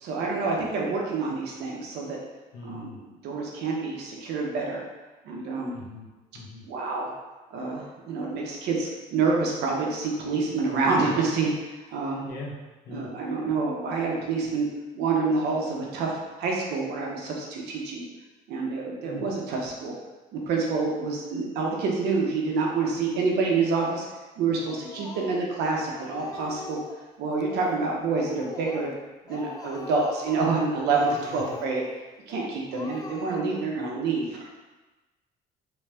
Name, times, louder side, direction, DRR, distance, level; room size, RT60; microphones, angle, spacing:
voice 1, 0.0-2.2 2.6-4.8 5.2-5.8 6.7-7.1 7.5-11.5 11.9-12.2 12.9-14.7 14.9-16.1 16.4-18.0 18.5-20.0 20.3-24.0 24.4-26.8 27.2-28.9 29.3-31.8 32.3-34.5, right 4 dB, 75° right, -1 dB, 0.9 m, -27 dB
voice 2, 2.5-3.0 5.7-6.1 6.3-6.6 12.2-12.5 12.8-13.1 19.0-19.3 31.3-31.6, left 3 dB, 70° left, -2 dB, 1.0 m, -41 dB
Speech, 24.7-25.6 25.9-27.0 27.4-27.9 28.1-29.0 29.3-30.5 30.8-31.9 32.3-32.4 32.7-33.7, left 3 dB, 20° left, 0.3 m, -43 dB
3.4 x 3.1 x 3.4 m, 1.2 s
cardioid pair, 110°, 17 cm